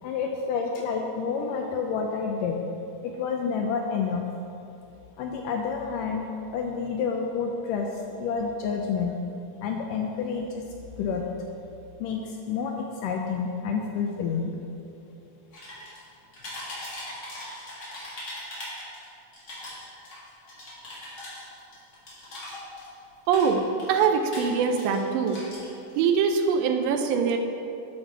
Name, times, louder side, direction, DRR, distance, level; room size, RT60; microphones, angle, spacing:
voice 1, 0.0-2.6 3.0-4.2 5.2-6.3 6.5-9.2 9.6-10.7 11.0-11.2 12.0-14.6, left 5 dB, 80° left, 2 dB, 1.9 m, -29 dB
sound 1, 15.5-16.0 16.3-19.0 19.3-23.0 23.2-25.0 25.3-26.1, left 1 dB, 40° left, 1.9 m, -40 dB
voice 2, 23.3-23.6 23.9-25.4 26.0-27.4, right 6 dB, 80° right, 5 dB, 2.2 m, -23 dB
9.0 x 6.0 x 4.5 m, 2.8 s
omnidirectional pair, 4.3 m